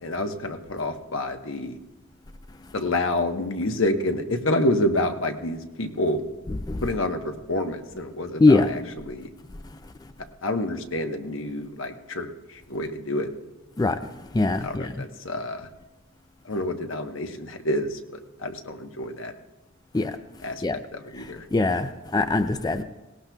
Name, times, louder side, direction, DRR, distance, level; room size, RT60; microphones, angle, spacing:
voice 1, 0.0-1.8 2.7-6.2 6.8-8.8 9.1-9.3 10.4-13.3 14.6-15.7 16.4-18.0 18.4-19.3 20.4-21.5, left 1 dB, 80° left, 1.1 m, -28 dB
voice 2, 8.4-8.7 13.8-14.0 14.3-14.9 19.9-20.1 20.6-20.8 21.5-22.8, left 3 dB, 20° left, 0.4 m, -21 dB
18.5 x 18.0 x 2.3 m
head